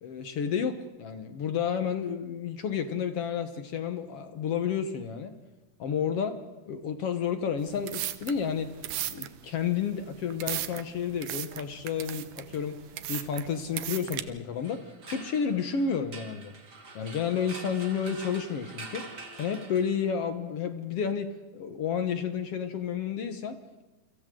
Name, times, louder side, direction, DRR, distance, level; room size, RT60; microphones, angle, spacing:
voice 1, 0.0-5.3 5.8-6.4 6.6-8.7 9.1-12.8 13.1-16.5 16.9-19.1 19.4-23.8, left 7 dB, 65° left, 9 dB, 1.6 m, -31 dB
sound 1, 7.6-14.2, right 13 dB, 70° right, 2.1 m, -37 dB
sound 2, 14.5-20.2, right 3 dB, 30° right, 2.5 m, -45 dB
29.5 x 25.0 x 3.8 m, 1.2 s
omnidirectional pair, 4.1 m